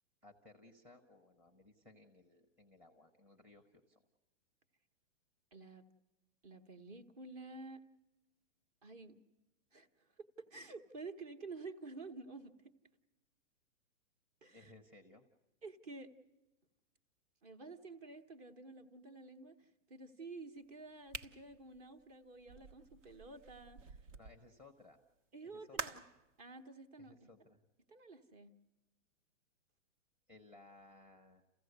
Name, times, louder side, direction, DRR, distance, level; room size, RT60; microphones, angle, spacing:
voice 1, 0.2-4.0 14.5-15.3 24.1-25.0 25.4-26.0 27.0-27.6 30.3-31.4, left 2 dB, 5° right, 6 dB, 0.8 m, -61 dB
voice 2, 5.5-5.8 6.4-7.8 8.8-9.2 9.7-12.7 14.4-14.7 15.6-16.1 17.4-24.0 25.3-26.0 26.4-27.3 27.9-28.5, right 3 dB, 30° right, 8 dB, 1.1 m, -51 dB
sound 1, 21.1-24.4 25.7-26.2, right 5 dB, 75° right, 1.4 m, -47 dB
29.0 x 15.5 x 8.0 m, 1.1 s
hypercardioid pair, 160°, 38 cm